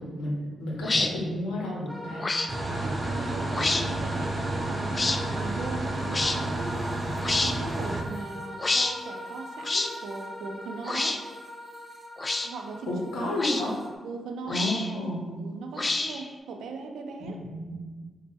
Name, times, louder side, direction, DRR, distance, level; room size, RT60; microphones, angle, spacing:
voice 1, 0.0-2.3 12.9-13.7 14.5-15.2 17.2-17.8, left 1 dB, 90° left, -2 dB, 0.7 m, -31 dB
sound 1, 0.8-1.1 2.2-2.5 3.5-3.8 4.9-5.2 6.1-6.4 7.2-7.6 8.6-8.9 9.6-9.9 10.8-11.2 12.2-12.5 13.4-13.6 14.5-14.9 15.8-16.3, left 2 dB, 35° left, 0.3 m, -27 dB
sound 2, 1.9-13.9, left 1 dB, 10° left, 0.8 m, -41 dB
sound 3, 2.5-8.0, right 2 dB, 35° right, 0.7 m, -31 dB
voice 2, 2.8-6.9 7.4-11.2 12.4-13.3 14.0-14.6 14.9-15.1 15.4-17.4, right 3 dB, 80° right, 3 dB, 0.4 m, -39 dB
4.2 x 2.1 x 3.4 m, 1.4 s
supercardioid pair, 50°, 0 cm